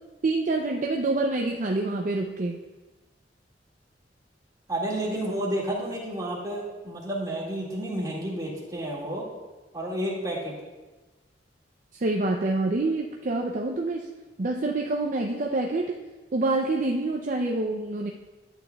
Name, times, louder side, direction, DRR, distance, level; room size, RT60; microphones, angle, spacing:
voice 1, 0.2-2.6 11.9-14.1 14.4-16.0 16.3-18.1, right 2 dB, 45° right, 1 dB, 0.5 m, -26 dB
voice 2, 4.7-9.3 9.7-10.6, right 1 dB, 20° right, -6 dB, 2.0 m, -30 dB
11.0 x 8.4 x 2.3 m, 1.2 s
head